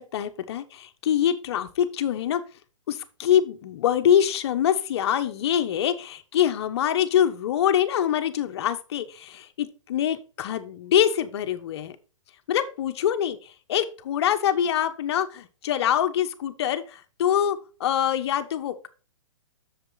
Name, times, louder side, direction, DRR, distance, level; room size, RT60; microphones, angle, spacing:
voice 1, 0.0-2.4 2.9-12.0 12.5-18.9, left 10 dB, 55° left, 10 dB, 1.2 m, -24 dB
7.9 x 6.8 x 4.0 m, 0.35 s
hypercardioid pair, 135°, 17 cm